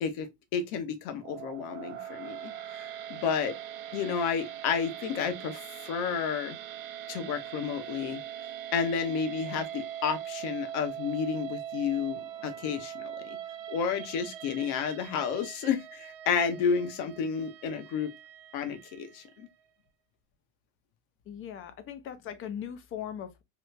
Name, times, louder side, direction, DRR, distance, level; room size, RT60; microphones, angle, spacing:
voice 1, 0.0-2.5 2.8-3.6 3.9-6.6 7.1-8.2 8.7-13.4 13.7-18.1 18.5-19.5, left 6 dB, 55° left, 0.9 m, -31 dB
sound 1, 1.2-19.4, right 10 dB, 60° right, 0.6 m, -42 dB
voice 2, 21.3-23.4, left 9 dB, 30° left, 0.4 m, -39 dB
3.0 x 2.4 x 3.1 m
supercardioid pair, 120°, 48 cm